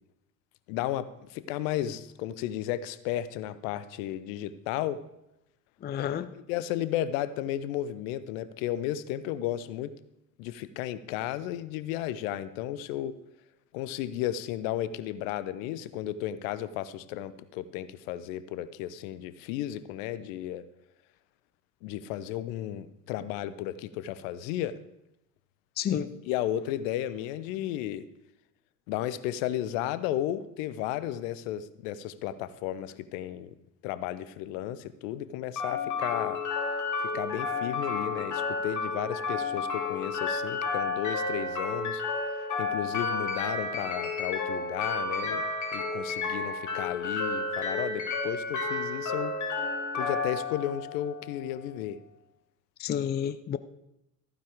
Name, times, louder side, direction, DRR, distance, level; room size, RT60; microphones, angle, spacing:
voice 1, 0.7-5.0 6.2-9.9 10.4-13.2 13.7-20.6 21.8-24.8 26.3-28.1 28.9-33.5 33.8-36.4 37.0-42.0 42.6-49.4 49.9-52.0, left 12 dB, 60° left, 0.9 m, -34 dB
voice 2, 5.8-6.3 25.8-26.1 52.8-53.6, left 9 dB, 20° left, 0.5 m, -30 dB
sound 1, 35.6-51.6, left 3 dB, 40° left, 4.0 m, -31 dB
14.5 x 9.4 x 5.0 m
figure-of-eight pair, 70°, 47 cm